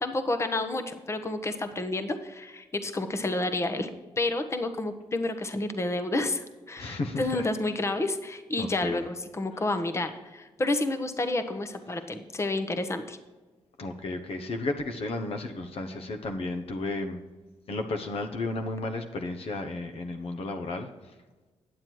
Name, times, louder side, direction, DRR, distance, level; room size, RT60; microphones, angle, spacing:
voice 1, 0.0-3.9 4.2-13.2, left 2 dB, 25° left, 8 dB, 1.0 m, -30 dB
voice 2, 6.8-7.4 8.6-9.0 13.8-17.2 17.7-20.9, left 2 dB, 65° left, 5 dB, 1.1 m, -33 dB
10.0 x 7.5 x 4.6 m, 1.2 s
cardioid pair, 65°, 11 cm